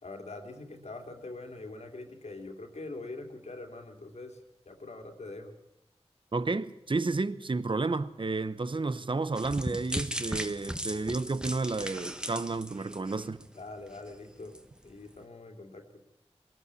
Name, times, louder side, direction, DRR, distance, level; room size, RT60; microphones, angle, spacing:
voice 1, 0.0-5.5 13.5-14.6 14.8-15.9, left 2 dB, 85° left, 2.9 m, -43 dB
voice 2, 6.3-13.4, right 3 dB, 50° right, 0.9 m, -31 dB
sound 1, 9.4-13.6 13.9-14.1 14.5-14.6, equal, 5° right, 1.4 m, -37 dB
21.0 x 13.5 x 9.7 m
wide cardioid pair, 80°, 11 cm